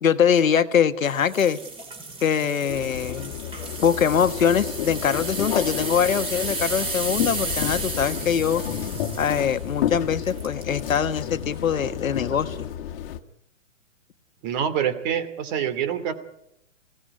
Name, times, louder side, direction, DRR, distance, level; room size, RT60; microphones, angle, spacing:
voice 1, 0.0-1.6 2.2-3.3 3.8-8.6 9.2-12.7, left 7 dB, 85° left, 10 dB, 1.5 m, -23 dB
sound 1, 1.1-11.0 11.6-11.8 12.3-12.4, right 3 dB, 15° right, 3.9 m, -34 dB
sound 2, 2.7-13.2, left 10 dB, 45° left, 1.9 m, -31 dB
voice 2, 14.4-16.1, right 9 dB, 35° right, 13 dB, 2.6 m, -26 dB
24.5 x 17.5 x 9.7 m, 0.81 s
hypercardioid pair, 145°, 39 cm